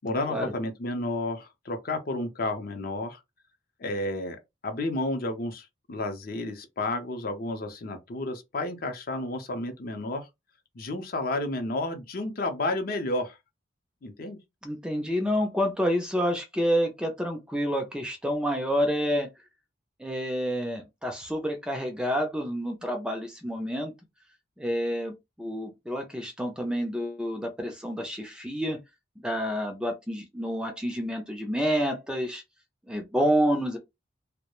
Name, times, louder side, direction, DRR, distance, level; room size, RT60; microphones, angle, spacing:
voice 1, 0.0-3.2 3.8-4.4 4.6-10.3 10.8-13.4 14.0-14.4, left 2 dB, 50° left, 0.5 m, -31 dB
voice 2, 14.6-19.3 20.0-23.9 24.6-28.8 29.2-32.4 32.9-33.8, equal, 5° right, 0.3 m, -28 dB
2.2 x 2.0 x 2.9 m
head